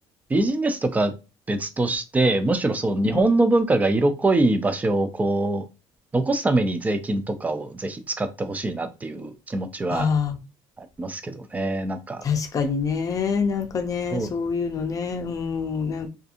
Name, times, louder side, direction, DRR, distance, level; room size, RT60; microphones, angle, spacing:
voice 1, 0.3-1.1 1.5-5.6 6.1-10.1 10.8-12.2 14.1-14.3, right 2 dB, 15° right, 0.4 m, -23 dB
voice 2, 9.9-10.4 12.2-16.1, left 5 dB, 35° left, 0.6 m, -26 dB
2.6 x 2.4 x 2.5 m
cardioid pair, 120°, 10 cm